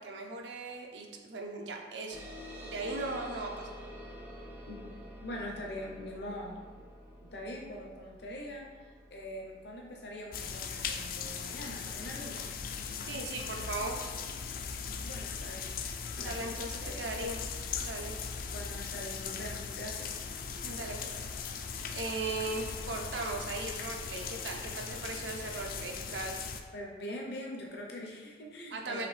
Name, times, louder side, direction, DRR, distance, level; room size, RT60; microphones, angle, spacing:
voice 1, 0.0-2.2 2.6-3.7 13.1-14.0 16.2-17.4 17.8-18.1 20.6-21.3 21.9-26.4 28.7-29.1, right 3 dB, 90° right, 1 dB, 0.6 m, -38 dB
sound 1, 2.1-13.0, equal, 15° right, 0.4 m, -49 dB
voice 2, 5.2-6.6 7.2-12.5 15.0-15.7 16.1-17.1 18.4-20.1 26.7-29.1, left 1 dB, 70° left, -1 dB, 0.7 m, -43 dB
sound 2, 10.3-26.6, left 6 dB, 50° left, 0.3 m, -39 dB
4.9 x 3.3 x 3.3 m, 1.5 s
head